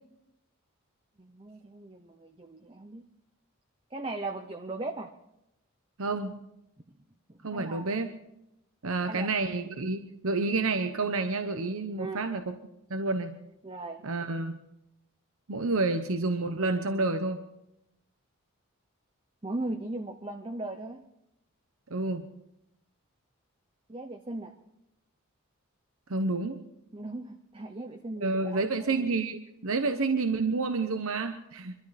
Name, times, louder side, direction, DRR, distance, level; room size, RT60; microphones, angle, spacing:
voice 1, 1.2-3.0 3.9-5.1 7.3-7.9 9.1-9.3 12.0-12.2 13.6-14.0 19.4-21.0 23.9-24.5 26.9-29.0, right 2 dB, 25° right, 5 dB, 0.8 m, -38 dB
voice 2, 6.0-6.4 7.4-8.1 8.8-12.5 12.9-13.4 14.0-14.6 15.5-17.4 21.9-22.3 26.1-26.6 28.2-31.7, right 3 dB, 75° right, 7 dB, 0.9 m, -29 dB
24.5 x 13.0 x 4.2 m, 0.84 s
head